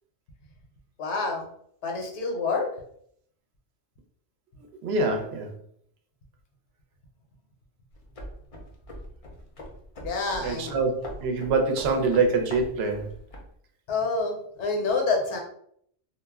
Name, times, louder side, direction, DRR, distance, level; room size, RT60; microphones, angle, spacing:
voice 1, 1.0-1.5 1.8-2.7 10.0-10.8 13.9-15.4, left 3 dB, 70° left, 1 dB, 1.0 m, -27 dB
voice 2, 4.8-5.5 10.4-13.1, right 3 dB, 65° right, 4 dB, 0.8 m, -25 dB
sound 1, 7.9-13.5, left 1 dB, 40° left, 0.5 m, -42 dB
2.3 x 2.1 x 3.4 m, 0.66 s
omnidirectional pair, 1.3 m